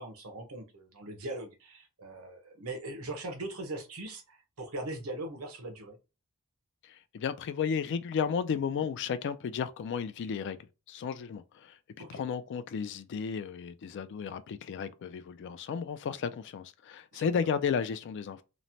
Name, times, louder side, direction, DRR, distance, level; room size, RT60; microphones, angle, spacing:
voice 1, 0.0-6.0 12.0-12.2 17.1-17.5, right 2 dB, 75° right, 0.8 m, -40 dB
voice 2, 6.8-11.8 12.1-18.4, left 6 dB, 55° left, 0.3 m, -33 dB
3.0 x 2.1 x 2.6 m
head